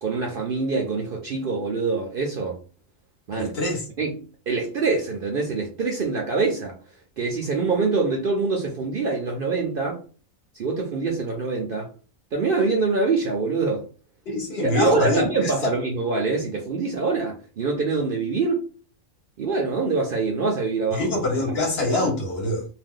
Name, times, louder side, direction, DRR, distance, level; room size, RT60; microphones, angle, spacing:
voice 1, 0.0-2.6 3.3-3.5 4.0-4.2 4.5-6.8 7.2-10.0 10.5-11.9 12.3-13.8 14.6-18.6 19.4-21.1 21.5-21.6, right 4 dB, 55° right, 0.6 m, -25 dB
voice 2, 3.3-3.8 14.3-15.7 20.9-22.7, left 1 dB, 55° left, 1.0 m, -24 dB
2.6 x 2.2 x 3.6 m
omnidirectional pair, 1.4 m